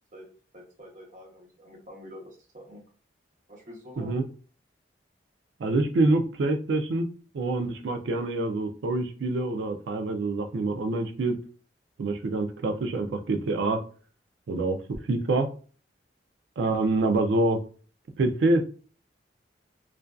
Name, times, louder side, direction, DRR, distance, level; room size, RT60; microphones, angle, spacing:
voice 1, 0.5-2.8 3.5-4.2, equal, 45° right, -1 dB, 0.8 m, -46 dB
voice 2, 5.6-7.1 7.3-11.4 12.0-13.8 14.5-14.8 15.1-15.5 16.6-17.6 18.2-18.6, right 2 dB, 80° right, 6 dB, 0.4 m, -26 dB
2.4 x 2.3 x 2.2 m, 0.39 s
head